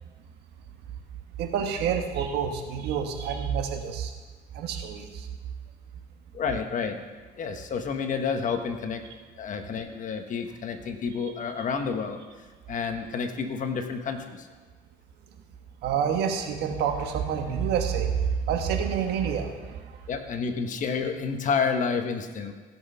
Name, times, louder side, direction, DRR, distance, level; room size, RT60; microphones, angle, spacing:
voice 1, 1.4-4.1 4.5-5.3 15.8-19.8, right 7 dB, 80° right, 4 dB, 1.5 m, -28 dB
voice 2, 6.3-7.0 7.4-9.0 9.4-12.2 12.7-14.5 20.1-22.5, left 5 dB, 50° left, 6 dB, 1.3 m, -29 dB
16.0 x 6.3 x 5.5 m, 1.4 s
cardioid pair, 110°, 17 cm